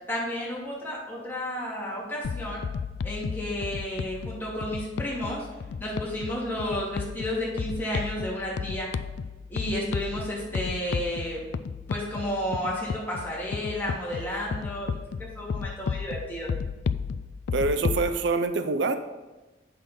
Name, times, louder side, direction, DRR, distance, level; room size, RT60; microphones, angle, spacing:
voice 1, 0.1-2.6 3.0-5.5 5.8-8.9 9.5-11.4 11.9-16.5, equal, 10° left, -6 dB, 2.7 m, -32 dB
sound 1, 2.2-18.1, left 5 dB, 70° left, 0.3 m, -33 dB
voice 2, 17.5-19.0, right 3 dB, 75° right, 9 dB, 0.5 m, -25 dB
8.2 x 6.0 x 5.3 m, 1.2 s
head